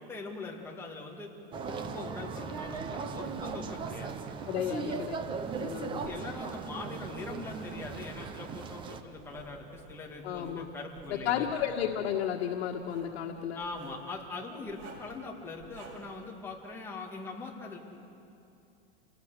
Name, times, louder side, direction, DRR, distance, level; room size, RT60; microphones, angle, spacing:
voice 1, 0.1-1.3 1.7-4.1 4.6-5.0 6.0-11.5 13.5-17.8, left 3 dB, 5° left, -2 dB, 2.1 m, -42 dB
sound 1, 1.5-9.0, right 5 dB, 15° right, 0.6 m, -38 dB
Writing, 2.6-8.3 8.8-10.6 10.9-11.7 12.7-13.2 13.6-14.0 14.7-15.2 15.6-16.2, right 4 dB, 80° right, 7.6 m, -52 dB
voice 2, 4.5-5.2 5.6-6.1 10.2-10.7 11.2-13.6, left 9 dB, 85° left, 1 dB, 1.7 m, -32 dB
28.5 x 19.0 x 8.2 m, 2.8 s
supercardioid pair, 175°, 32 cm